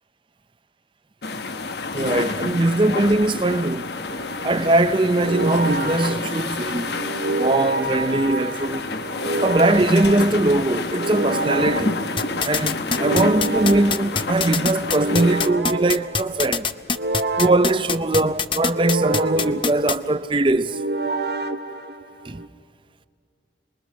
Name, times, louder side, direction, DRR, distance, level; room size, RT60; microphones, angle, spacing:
sound 1, 1.2-15.5, left 3 dB, 70° left, 1.0 m, -29 dB
voice 1, 1.9-3.9 4.4-6.9 7.4-8.9 9.4-12.0 12.4-16.7 17.4-20.8 22.2-22.4, right 2 dB, 30° right, 0.6 m, -21 dB
sound 2, 4.1-22.5, right 2 dB, 70° right, 1.0 m, -29 dB
sound 3, 12.2-20.0, left 6 dB, 30° left, 0.6 m, -23 dB
27.5 x 21.5 x 6.3 m
head